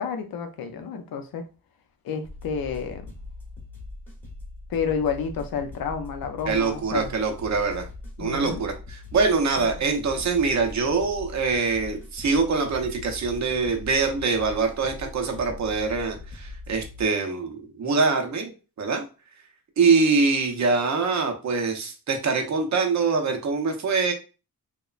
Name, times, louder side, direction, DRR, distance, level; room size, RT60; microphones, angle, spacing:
voice 1, 0.0-1.4 2.0-3.1 4.7-7.1 8.2-8.7 9.6-9.7, left 6 dB, 75° left, 0.5 m, -30 dB
sound 1, 2.2-17.0, left 2 dB, 5° left, 0.7 m, -41 dB
voice 2, 6.5-7.9 8.2-19.0 19.8-24.1, right 4 dB, 50° right, 0.6 m, -24 dB
3.0 x 2.1 x 2.3 m
wide cardioid pair, 155°, 36 cm